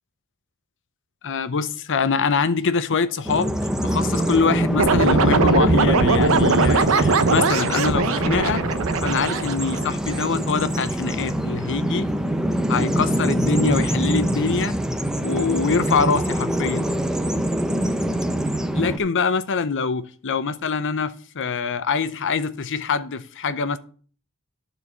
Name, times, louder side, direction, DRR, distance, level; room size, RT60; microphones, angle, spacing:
voice 1, 1.2-3.6 3.8-8.6 9.0-12.1 12.7-14.8 15.2-16.9 18.7-23.8, left 5 dB, 60° left, 0.8 m, -24 dB
Bird vocalization bird call bird song, 3.2-19.0, right 1 dB, 5° right, 0.7 m, -24 dB
sound 1, 4.8-10.3, right 4 dB, 65° right, 0.7 m, -20 dB
11.0 x 4.6 x 6.7 m
head